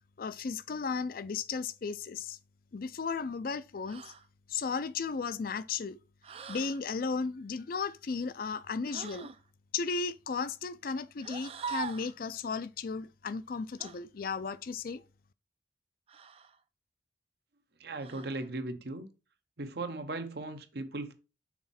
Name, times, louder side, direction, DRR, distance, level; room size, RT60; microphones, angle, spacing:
voice 1, 0.2-2.4 2.7-4.1 4.5-6.0 6.5-9.3 9.7-15.0, left 5 dB, 50° left, 0.4 m, -35 dB
sound 1, 3.9-4.3 6.2-6.8 8.9-9.4 11.2-12.1 13.8-14.0 16.1-16.6 18.0-18.5, right 6 dB, 35° right, 0.4 m, -42 dB
voice 2, 17.8-19.1 19.6-21.1, right 2 dB, 60° right, 0.8 m, -37 dB
5.9 x 4.2 x 4.2 m
head